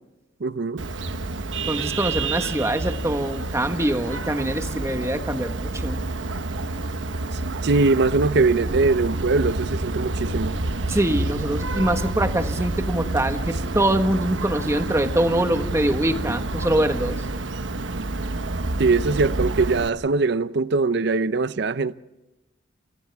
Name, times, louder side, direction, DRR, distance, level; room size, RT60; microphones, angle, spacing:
voice 1, 0.4-0.8 7.3-10.6 18.8-21.9, right 3 dB, 65° right, 0.6 m, -22 dB
Vehicle horn car horn honking, 0.8-19.9, right 2 dB, 85° right, 1.1 m, -28 dB
voice 2, 1.7-6.0 10.9-17.1, right 1 dB, 15° right, 1.4 m, -24 dB
28.5 x 27.5 x 3.5 m
head